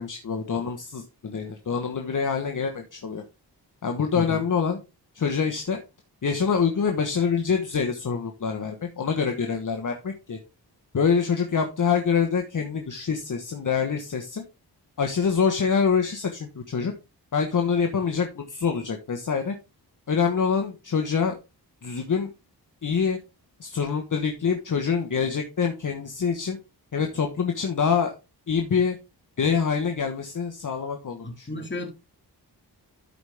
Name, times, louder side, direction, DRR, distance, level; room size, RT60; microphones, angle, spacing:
voice 1, 0.0-3.2 3.8-4.8 5.1-5.8 6.2-10.4 10.9-14.4 15.0-16.9 17.3-19.5 20.1-21.3 21.8-22.3 22.8-23.2 23.6-26.6 26.9-28.1 28.5-29.0 29.4-31.7, left 6 dB, 50° left, 1.2 m, -25 dB
voice 2, 31.2-31.9, left 2 dB, 25° left, 2.8 m, -33 dB
12.0 x 4.9 x 3.5 m
cardioid pair, 75°, 41 cm